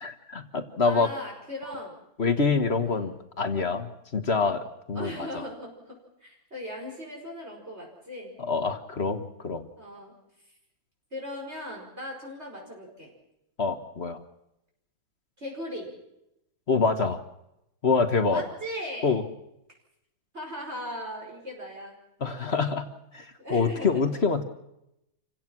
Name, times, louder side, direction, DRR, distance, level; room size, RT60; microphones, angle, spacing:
voice 1, 0.0-1.1 2.2-5.4 8.4-9.6 13.6-14.2 16.7-17.2 17.8-18.4 19.0-19.2 22.2-22.9 23.1-24.4, left 4 dB, 35° left, 8 dB, 1.4 m, -26 dB
voice 2, 0.8-2.0 2.8-3.1 4.9-8.3 9.8-10.5 11.1-13.1 15.4-15.9 18.3-19.1 20.3-22.0 23.4-24.2, equal, 30° right, -2 dB, 5.3 m, -38 dB
28.5 x 17.0 x 6.1 m, 0.85 s
omnidirectional pair, 2.1 m